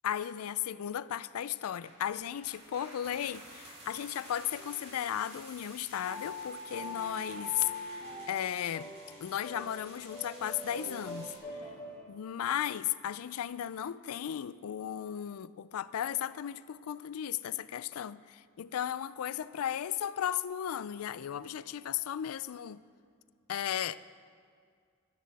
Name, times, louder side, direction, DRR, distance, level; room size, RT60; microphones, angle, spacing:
voice 1, 0.0-8.9 9.2-11.3 12.1-22.8 23.5-24.0, left 10 dB, 85° left, 0.4 m, -35 dB
sound 1, 1.7-11.4, right 1 dB, 30° right, 1.9 m, -52 dB
sound 2, 3.2-3.7 4.4-5.0 6.0-12.0, left 2 dB, 15° left, 3.5 m, -44 dB
13.5 x 12.0 x 4.1 m
head